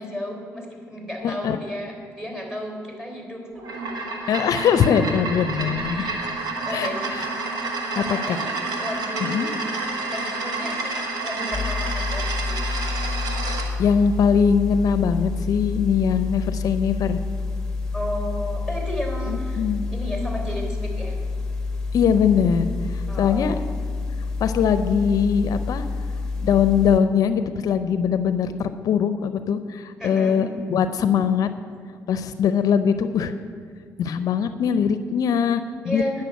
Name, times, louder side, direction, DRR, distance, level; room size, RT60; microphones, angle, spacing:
voice 1, 0.0-3.6 5.9-7.1 7.9-8.5 8.8-9.6 10.1-12.7 17.9-19.6 19.9-21.2 23.1-23.6 30.0-30.4 35.8-36.2, left 1 dB, 10° right, 1 dB, 3.6 m, -33 dB
voice 2, 1.2-1.6 4.3-6.1 6.7-7.3 8.0-8.4 9.2-9.5 13.8-17.2 19.3-19.9 21.9-23.6 24.4-25.8 26.4-31.5 32.1-33.3 34.0-36.2, left 7 dB, 70° left, 11 dB, 0.5 m, -21 dB
sound 1, 3.6-13.7, right 3 dB, 75° right, 1.6 m, -29 dB
sound 2, 11.5-27.0, left 3 dB, 10° left, 1.1 m, -28 dB
10.5 x 6.6 x 8.1 m, 2.2 s
cardioid pair, 70°, 6 cm